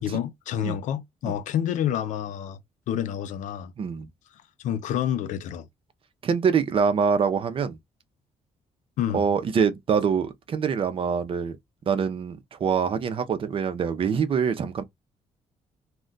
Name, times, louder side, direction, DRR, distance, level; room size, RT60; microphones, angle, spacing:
voice 1, 0.0-2.6 2.9-3.7 4.6-5.7 9.0-9.2, left 10 dB, 80° left, 0.4 m, -28 dB
voice 2, 3.8-4.1 6.2-7.8 9.1-11.6 11.9-14.8, right 6 dB, 45° right, 0.5 m, -24 dB
2.3 x 2.2 x 3.7 m
cardioid pair, 115°, 13 cm